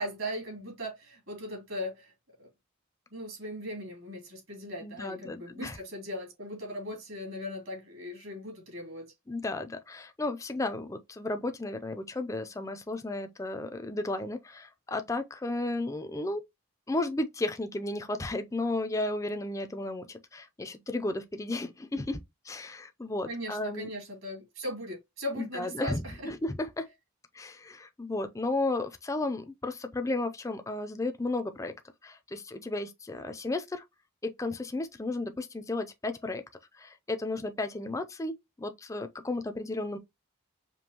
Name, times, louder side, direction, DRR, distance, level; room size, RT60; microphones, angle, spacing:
voice 1, 0.0-2.1 2.4-2.5 3.1-9.1 23.3-26.3, equal, 70° right, 2.4 m, -38 dB
voice 2, 4.8-5.8 9.3-16.4 16.9-23.9 25.4-26.9 27.3-31.7 32.0-33.8 34.2-36.4 36.8-40.0, left 2 dB, 15° left, 0.4 m, -34 dB
5.2 x 2.7 x 2.8 m
head